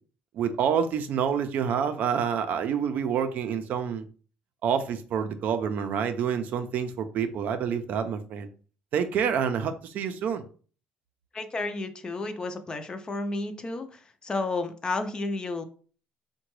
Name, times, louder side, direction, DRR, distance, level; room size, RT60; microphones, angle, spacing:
voice 1, 0.3-4.0 4.6-8.5 8.9-10.4, right 7 dB, 60° right, 8 dB, 0.4 m, -27 dB
voice 2, 11.3-15.6, left 3 dB, 25° left, 8 dB, 0.4 m, -32 dB
3.8 x 2.2 x 3.0 m, 0.40 s
cardioid pair, 120°, 3 cm